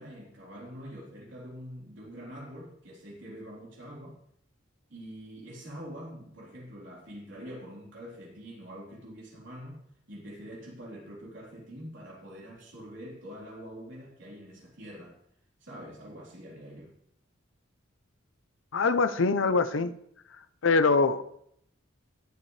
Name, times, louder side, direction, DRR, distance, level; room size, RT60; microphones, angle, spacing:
voice 1, 0.0-4.2 4.9-9.8 10.1-15.2 15.6-16.9, equal, 65° right, -3 dB, 3.9 m, -45 dB
voice 2, 18.7-19.9 20.6-21.2, left 4 dB, 70° left, 12 dB, 0.6 m, -23 dB
18.5 x 7.1 x 3.3 m, 0.70 s
head